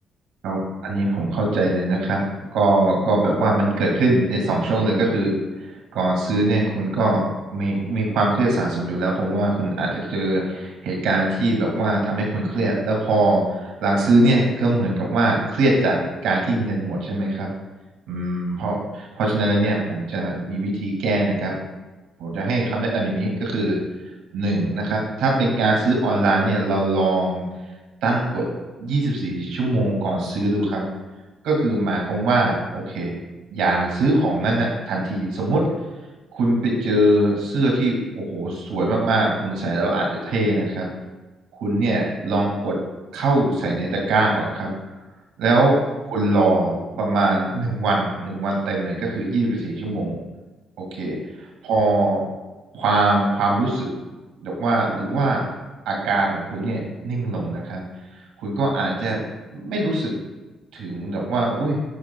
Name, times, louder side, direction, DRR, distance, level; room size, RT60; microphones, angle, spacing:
voice 1, 0.4-2.2 2.5-7.2 7.5-17.5 18.1-21.5 22.2-23.8 24.3-27.5 28.0-28.4 28.8-30.8 31.4-33.2 33.5-35.6 36.3-40.9 41.5-42.8 43.1-44.7 45.4-45.8 46.1-50.2 50.8-51.2 51.6-52.3 52.7-53.9 54.4-55.5 55.9-57.8 58.4-59.2 59.5-60.2 60.7-61.8, right 2 dB, 90° right, 0 dB, 1.9 m, -22 dB
11.0 x 5.2 x 2.3 m, 1.2 s
cardioid pair, 90°, 0 cm